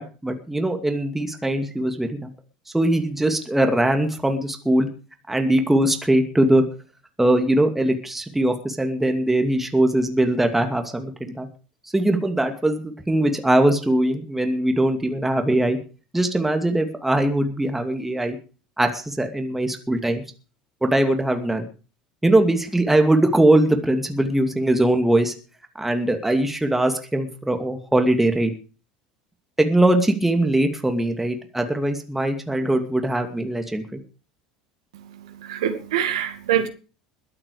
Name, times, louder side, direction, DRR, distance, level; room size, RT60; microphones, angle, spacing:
voice 1, 0.0-2.3 2.7-4.9 5.3-6.6 7.2-11.5 11.9-15.8 16.1-18.4 18.8-20.2 20.8-21.7 22.2-25.3 25.8-28.5 29.6-34.0, right 1 dB, 5° right, 2.5 m, -21 dB
voice 2, 34.9-36.7, right 9 dB, 65° right, 2.0 m, -25 dB
21.5 x 8.8 x 5.0 m
figure-of-eight pair, 70°, 3 cm